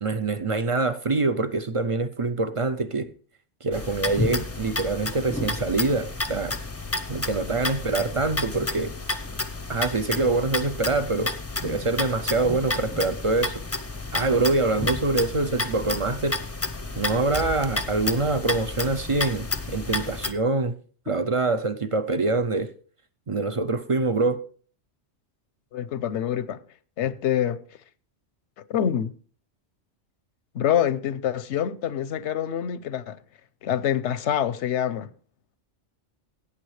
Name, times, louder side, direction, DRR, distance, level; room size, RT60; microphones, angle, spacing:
voice 1, 0.0-3.1 3.6-6.5 7.1-8.9 9.7-11.3 11.6-13.6 14.1-16.4 17.0-20.8 21.1-22.7 23.3-24.4, right 3 dB, 40° right, 0.5 m, -25 dB
sound 1, 3.7-20.3, left 3 dB, 15° left, 0.6 m, -31 dB
voice 2, 25.7-26.6 27.0-27.6 28.7-29.1 30.5-33.2 33.6-35.1, left 10 dB, 90° left, 1.0 m, -26 dB
17.0 x 8.8 x 3.2 m
omnidirectional pair, 1.1 m